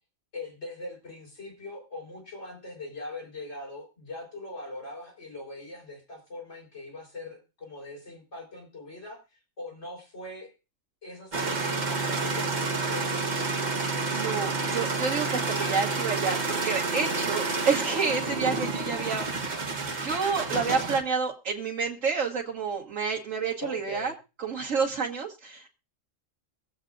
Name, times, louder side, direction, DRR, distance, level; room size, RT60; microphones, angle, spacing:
voice 1, 0.3-9.2 9.6-10.5 11.0-13.2 23.6-24.1, left 2 dB, 60° left, -2 dB, 5.3 m, -41 dB
sound 1, 11.3-21.0, right 3 dB, 35° right, 1.2 m, -29 dB
voice 2, 13.8-19.2 19.6-24.1 24.4-25.7, right 5 dB, 80° right, -1 dB, 1.7 m, -29 dB
23.5 x 7.9 x 2.5 m, 0.31 s
omnidirectional pair, 1.3 m